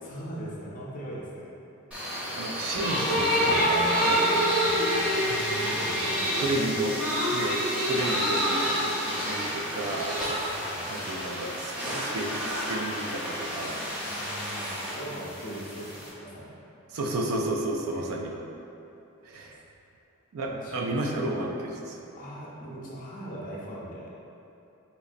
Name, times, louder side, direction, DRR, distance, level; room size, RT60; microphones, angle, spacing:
voice 1, 0.0-1.5 4.2-5.0 5.5-6.5 10.5-11.1 14.0-16.5 17.8-18.1 20.5-21.0 22.1-24.1, right 1 dB, 40° left, -5 dB, 0.6 m, -41 dB
sound 1, 1.9-16.1, equal, 5° right, 0.9 m, -28 dB
voice 2, 2.4-4.4 6.4-7.0 7.3-7.6 7.8-10.1 10.9-13.8 16.9-18.3 19.3-19.6 20.3-22.0, right 1 dB, 65° right, 0 dB, 0.4 m, -32 dB
3.9 x 3.0 x 2.5 m, 2.9 s
head